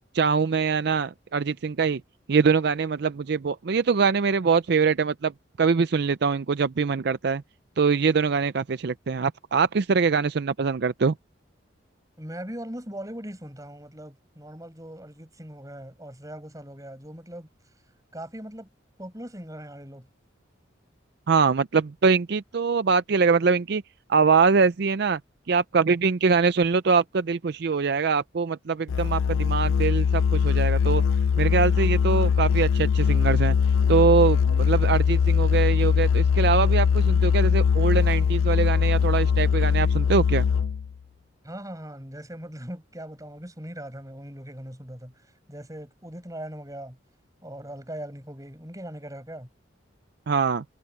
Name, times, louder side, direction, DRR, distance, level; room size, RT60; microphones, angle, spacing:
voice 1, 0.1-2.0 2.3-5.3 5.6-7.4 7.8-11.1 21.3-23.8 24.1-25.2 25.5-31.0 31.4-33.6 33.9-40.4 50.3-50.6, right 5 dB, 60° right, 0.5 m, -23 dB
voice 2, 12.2-17.5 18.1-18.7 19.0-20.1 41.4-45.1 45.5-47.0 47.4-49.5, right 1 dB, 20° right, 7.1 m, -40 dB
Musical instrument, 28.9-40.9, left 6 dB, 90° left, 0.4 m, -21 dB
head